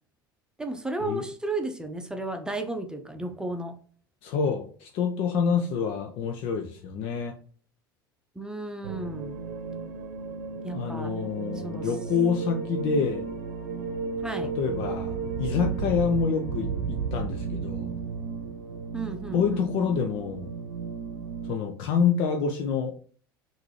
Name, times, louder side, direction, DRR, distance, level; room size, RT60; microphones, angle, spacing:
voice 1, 0.6-3.8 8.3-9.4 10.6-11.2 11.5-12.0 14.2-14.5 18.9-19.6, right 2 dB, 5° right, 6 dB, 0.8 m, -33 dB
voice 2, 4.2-7.3 10.7-13.3 14.6-18.0 19.3-20.5 21.5-22.9, left 6 dB, 50° left, 5 dB, 0.7 m, -27 dB
sound 1, 8.8-21.5, right 5 dB, 65° right, 0.8 m, -34 dB
5.9 x 2.7 x 3.1 m, 0.44 s
figure-of-eight pair, 75°, 12 cm